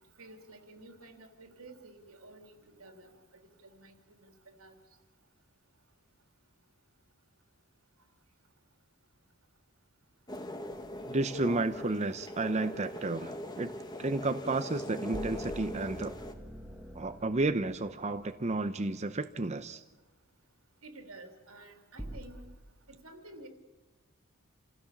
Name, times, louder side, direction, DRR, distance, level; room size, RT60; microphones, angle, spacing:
voice 1, 0.2-4.7 20.8-22.5 22.9-23.5, right 2 dB, 90° right, 5 dB, 3.2 m, -52 dB
sound 1, 10.3-16.3, left 1 dB, 20° left, 1.5 m, -41 dB
sound 2, 10.7-11.3 15.1-18.5 22.0-22.2, right 1 dB, 5° right, 1.6 m, -45 dB
voice 2, 11.1-13.7 14.0-16.2 16.9-19.8, right 2 dB, 30° right, 10 dB, 0.7 m, -32 dB
28.5 x 16.0 x 7.2 m, 1.2 s
head